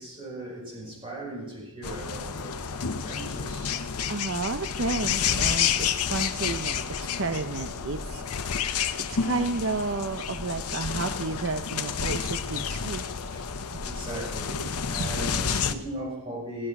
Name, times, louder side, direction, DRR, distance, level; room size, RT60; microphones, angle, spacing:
voice 1, 0.0-3.8 13.3-13.5 13.8-16.7, right 1 dB, 20° right, -4 dB, 6.9 m, -38 dB
sound 1, 1.8-15.7, left 7 dB, 90° left, 0.9 m, -30 dB
voice 2, 4.1-8.2 9.1-13.1 13.7-13.8 15.0-15.1, right 3 dB, 60° right, 7 dB, 0.7 m, -31 dB
15.5 x 15.5 x 6.0 m, 0.90 s
head